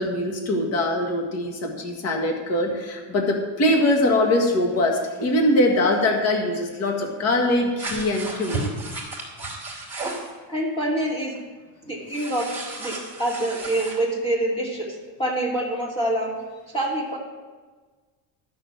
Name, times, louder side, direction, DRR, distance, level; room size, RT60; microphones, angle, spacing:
voice 1, 0.0-8.7, left 1 dB, 40° left, 2 dB, 1.9 m, -22 dB
sound 1, 7.8-10.3 12.1-14.0, right 2 dB, 5° right, 2.5 m, -33 dB
voice 2, 10.5-11.3 11.8-12.5 12.8-16.3 16.7-17.2, right 1 dB, 15° left, -3 dB, 2.8 m, -26 dB
12.0 x 6.7 x 7.6 m, 1.4 s
cardioid pair, 170°, 38 cm